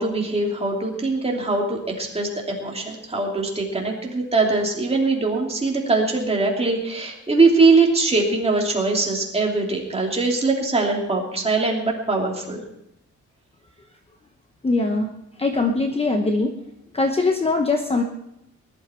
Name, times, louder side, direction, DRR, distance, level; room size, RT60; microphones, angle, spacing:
voice 1, 0.0-12.6, right 3 dB, 20° right, -1 dB, 3.0 m, -22 dB
voice 2, 14.6-15.1 15.4-16.5 16.9-18.0, left 3 dB, 20° left, 4 dB, 0.9 m, -21 dB
19.5 x 12.0 x 4.5 m, 0.83 s
wide cardioid pair, 165°, 32 cm